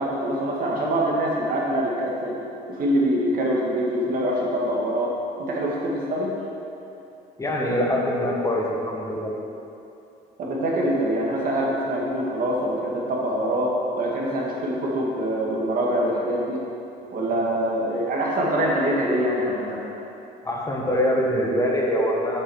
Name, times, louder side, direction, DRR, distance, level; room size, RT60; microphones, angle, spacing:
voice 1, 0.0-2.4 2.7-6.3 10.4-16.6 17.1-19.8, right 1 dB, 55° right, -3 dB, 2.1 m, -24 dB
voice 2, 7.4-9.3 20.4-22.4, equal, 20° left, -2 dB, 1.6 m, -24 dB
7.6 x 6.3 x 6.4 m, 2.8 s
cardioid pair, 110°, 17 cm